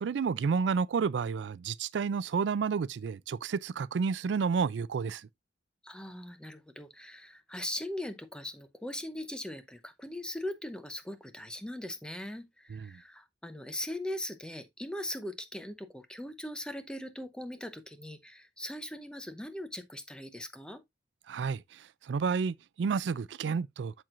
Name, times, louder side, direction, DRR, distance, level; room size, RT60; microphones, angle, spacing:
voice 1, 0.0-5.3 12.7-12.9 21.3-23.9, right 5 dB, 85° right, 0.4 m, -31 dB
voice 2, 5.8-20.8, left 1 dB, 5° left, 0.7 m, -40 dB
12.0 x 4.5 x 2.5 m
head